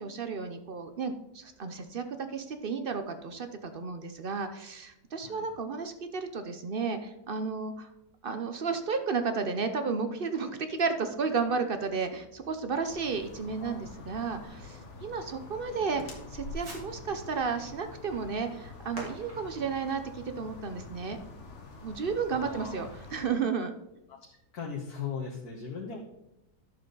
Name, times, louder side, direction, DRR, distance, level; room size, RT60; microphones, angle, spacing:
voice 1, 0.0-2.0 2.3-7.9 8.2-21.2 21.8-23.7, right 5 dB, 55° right, 8 dB, 0.6 m, -33 dB
voice 2, 5.2-5.5 13.6-13.8 14.5-14.6 15.7-16.0 22.3-22.9 24.1-26.0, left 6 dB, 60° left, -3 dB, 1.7 m, -39 dB
Fireworks, 10.7-21.4, right 1 dB, 75° right, 3.3 m, -52 dB
sound 1, 12.9-23.2, left 3 dB, 45° left, 1.4 m, -47 dB
sound 2, 15.9-20.5, left 2 dB, 90° left, 2.1 m, -48 dB
11.0 x 7.1 x 3.9 m, 0.91 s
omnidirectional pair, 1.9 m